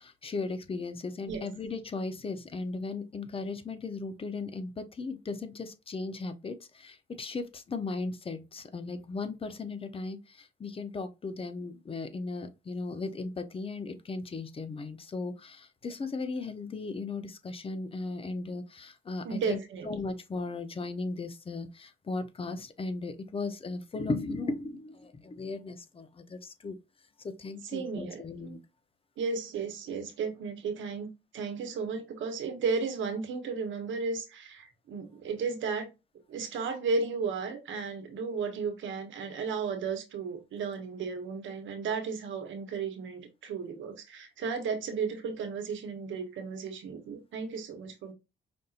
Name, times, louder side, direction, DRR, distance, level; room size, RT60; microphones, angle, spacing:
voice 1, 0.0-19.6 19.9-26.8 27.2-28.6, left 3 dB, 30° left, 0.6 m, -37 dB
voice 2, 19.2-19.9 27.6-28.6 29.2-31.1 31.3-35.9 36.3-48.1, right 5 dB, 75° right, 1.0 m, -34 dB
5.2 x 2.7 x 2.4 m
cardioid pair, 90°, 20 cm